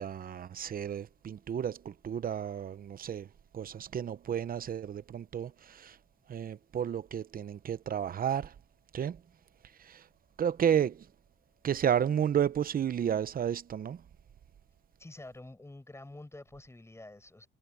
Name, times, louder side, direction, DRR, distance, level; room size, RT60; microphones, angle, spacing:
voice 1, 0.0-3.3 3.5-6.0 6.3-8.5 8.9-9.2 9.8-10.1 10.4-11.1 11.6-14.0, right 9 dB, 45° right, 0.8 m, -32 dB
voice 2, 15.0-17.5, left 2 dB, 15° left, 7.0 m, -48 dB
cardioid pair, 90°, 20 cm